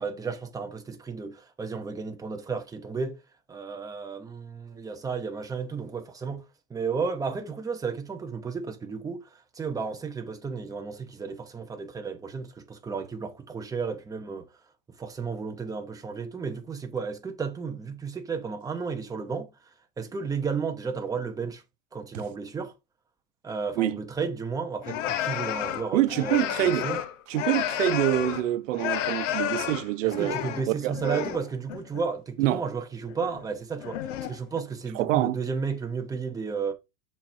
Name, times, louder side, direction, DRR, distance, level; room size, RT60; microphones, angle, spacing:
voice 1, 0.0-3.2 3.5-6.4 6.7-9.2 9.6-14.5 15.0-19.5 20.0-21.6 21.9-22.7 23.4-27.0 30.0-36.7, right 5 dB, 10° right, 0.8 m, -33 dB
sound 1, 24.8-28.5 28.7-31.4 31.7-32.1 33.1-33.5 33.8-34.6, left 11 dB, 75° left, 1.0 m, -31 dB
voice 2, 25.9-26.9 27.3-30.4 30.8-31.4 32.4-32.6 34.9-35.4, right 14 dB, 85° right, 0.8 m, -26 dB
7.2 x 5.9 x 2.6 m
supercardioid pair, 155°, 37 cm